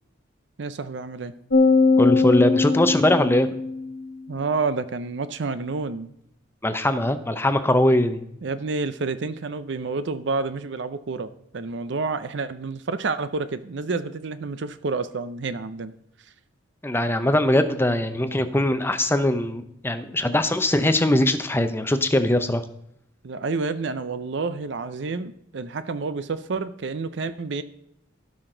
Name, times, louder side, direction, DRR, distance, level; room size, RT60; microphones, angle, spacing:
voice 1, 0.6-1.3 4.3-6.1 8.4-15.9 23.2-27.6, right 4 dB, 60° right, 12 dB, 0.5 m, -29 dB
sound 1, 1.5-4.0, left 4 dB, 70° left, 1.6 m, -20 dB
voice 2, 2.0-3.5 6.6-8.2 16.8-22.6, left 1 dB, 10° left, 9 dB, 0.6 m, -21 dB
16.5 x 5.9 x 3.8 m, 0.75 s
head